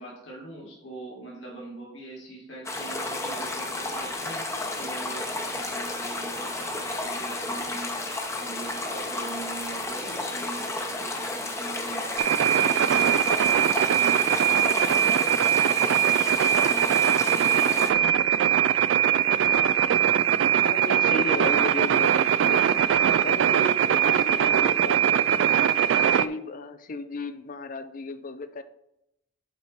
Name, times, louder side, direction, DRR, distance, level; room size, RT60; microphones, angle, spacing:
voice 1, 0.0-18.2 18.4-18.6, right 2 dB, 75° left, 2.5 m, -42 dB
sound 1, 2.7-17.9, left 2 dB, 15° left, 0.8 m, -32 dB
sound 2, 12.2-26.3, right 9 dB, 80° right, 0.3 m, -21 dB
voice 2, 20.6-22.7 23.2-25.6 26.0-28.6, left 3 dB, 45° left, 0.5 m, -35 dB
7.3 x 4.4 x 4.2 m
head